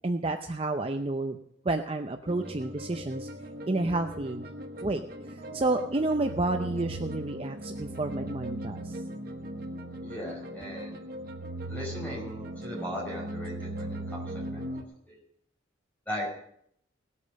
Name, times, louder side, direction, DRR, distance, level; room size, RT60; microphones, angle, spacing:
voice 1, 0.0-1.4 1.6-3.3 3.7-4.5 4.8-9.0, right 2 dB, 30° right, 5 dB, 0.6 m, -30 dB
sound 1, 2.3-14.8, right 1 dB, 50° right, 1.3 m, -39 dB
voice 2, 10.0-11.0 11.7-14.8 15.1-15.2 16.1-16.3, left 1 dB, 10° left, -3 dB, 5.3 m, -38 dB
18.5 x 8.5 x 5.4 m, 0.70 s
head